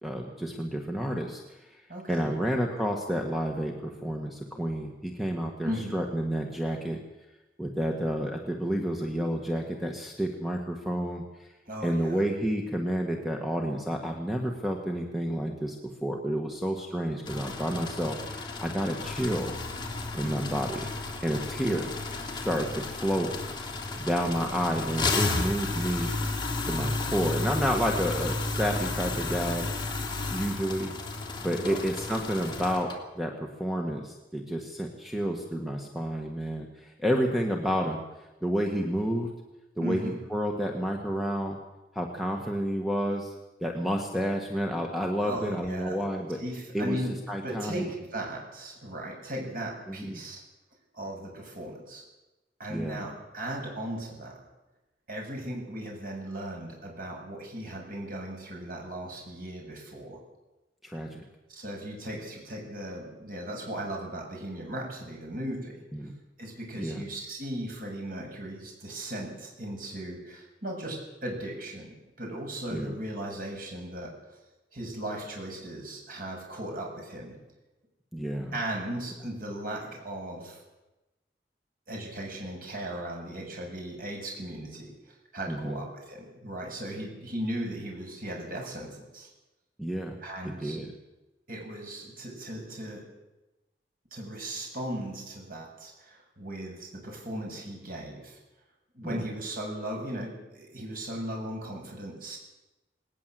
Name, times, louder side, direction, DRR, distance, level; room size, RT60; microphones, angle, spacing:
voice 1, 0.0-1.6 2.1-7.0 7.6-11.5 11.8-19.6 20.1-20.9 21.2-21.9 22.3-23.3 24.0-26.1 26.6-29.7 30.3-30.9 31.4-38.0 38.4-39.3 39.8-41.6 41.9-43.3 43.6-46.4 46.7-47.0 47.3-47.9 49.9-50.2 52.7-53.0 60.8-61.3 65.9-66.1 66.8-67.0 72.7-72.9 78.1-78.5 85.5-85.8 89.8-90.2 90.4-90.9 99.0-99.2, equal, ahead, 2 dB, 1.8 m, -30 dB
voice 2, 1.9-2.3 5.6-5.9 11.7-12.2 20.2-20.5 31.6-31.8 39.8-40.1 45.2-46.0 46.3-47.1 47.4-50.4 50.9-52.0 52.6-54.3 55.1-60.2 61.5-65.8 66.4-74.1 74.7-77.3 78.5-80.6 81.9-84.9 85.3-89.3 90.2-90.8 91.5-93.0 94.1-98.4 98.9-102.4, right 1 dB, 55° right, 0 dB, 7.5 m, -37 dB
sound 1, 17.3-33.0, left 3 dB, 25° left, 2.9 m, -33 dB
19.5 x 19.5 x 7.9 m, 1.0 s
head